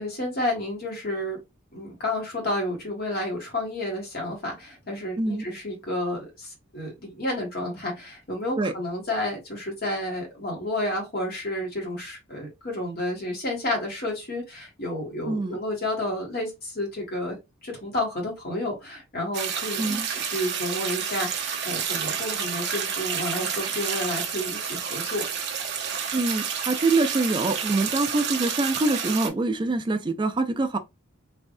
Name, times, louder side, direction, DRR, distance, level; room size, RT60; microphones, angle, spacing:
voice 1, 0.0-1.4 1.7-25.3, left 1 dB, 50° left, 1.5 m, -31 dB
voice 2, 15.3-15.6 19.8-20.1 26.1-30.8, right 2 dB, 20° right, 0.4 m, -25 dB
sound 1, 19.3-29.3, right 7 dB, 55° right, 0.7 m, -30 dB
3.3 x 2.6 x 2.5 m
head